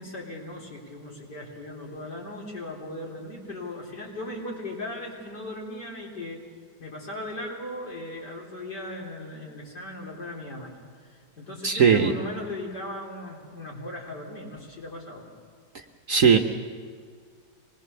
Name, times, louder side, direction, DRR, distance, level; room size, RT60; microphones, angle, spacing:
voice 1, 0.0-6.4 6.8-10.7 11.0-15.3, left 1 dB, 65° left, -3 dB, 4.5 m, -38 dB
voice 2, 11.6-12.1 16.1-16.4, right 6 dB, 50° right, 4 dB, 1.2 m, -18 dB
25.0 x 20.5 x 6.9 m, 2.1 s
omnidirectional pair, 2.0 m